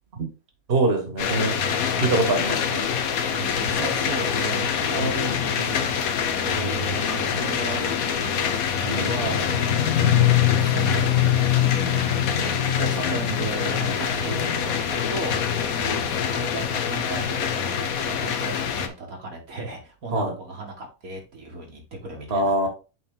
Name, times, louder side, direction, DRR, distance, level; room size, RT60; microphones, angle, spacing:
voice 1, 0.7-1.6 2.0-2.8 5.0-5.4 8.8-9.2 20.1-20.3 22.3-22.7, right 2 dB, 45° right, 4 dB, 1.8 m, -24 dB
sound 1, 1.2-18.9, left 8 dB, 75° left, 1.3 m, -24 dB
voice 2, 3.3-8.5 8.8-11.2 11.6-22.5, right 3 dB, 75° right, 1 dB, 2.2 m, -35 dB
8.1 x 3.9 x 3.8 m, 0.30 s
omnidirectional pair, 1.5 m